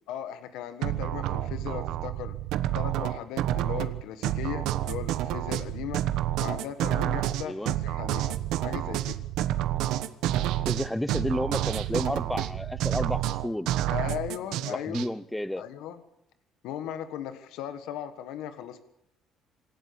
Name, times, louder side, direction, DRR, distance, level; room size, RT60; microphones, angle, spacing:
voice 1, 0.1-2.4 2.7-6.0 6.4-9.2 13.9-15.0 15.6-16.0 16.6-18.8, left 10 dB, 85° left, 10 dB, 1.5 m, -37 dB
sound 1, 0.8-15.1, right 13 dB, 80° right, 1.2 m, -29 dB
voice 2, 7.4-7.8 10.7-13.7 14.7-15.6, left 1 dB, 5° left, 17 dB, 0.7 m, -31 dB
27.0 x 12.0 x 8.6 m, 0.80 s
cardioid pair, 145°, 0 cm